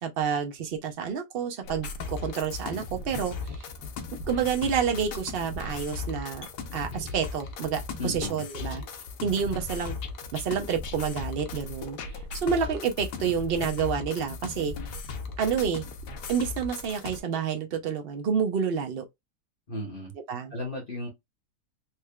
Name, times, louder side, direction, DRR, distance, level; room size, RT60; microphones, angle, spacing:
voice 1, 0.0-3.7 4.2-6.5 6.7-8.8 9.2-10.0 10.3-14.7 15.4-15.9 16.3-19.0 20.3-20.5, right 7 dB, 80° right, 0.5 m, -29 dB
sound 1, 1.6-17.2, left 4 dB, 80° left, 1.4 m, -37 dB
voice 2, 8.0-8.4 19.7-20.1 20.5-21.1, left 2 dB, 35° left, 1.2 m, -34 dB
4.3 x 3.2 x 2.2 m
omnidirectional pair, 1.8 m